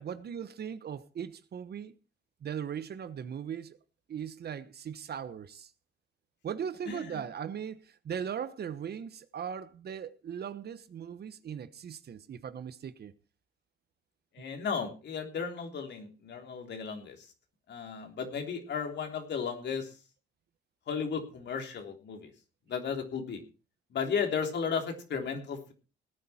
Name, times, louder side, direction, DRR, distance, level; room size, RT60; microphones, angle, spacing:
voice 1, 0.0-1.9 2.4-3.8 4.1-5.7 6.4-13.1, right 8 dB, 55° right, 1.2 m, -39 dB
voice 2, 6.9-7.2 14.3-17.3 17.7-20.0 20.9-22.3 22.7-23.4 23.9-25.7, left 6 dB, 60° left, 3.4 m, -34 dB
18.0 x 9.6 x 4.4 m
cardioid pair, 90°, 20 cm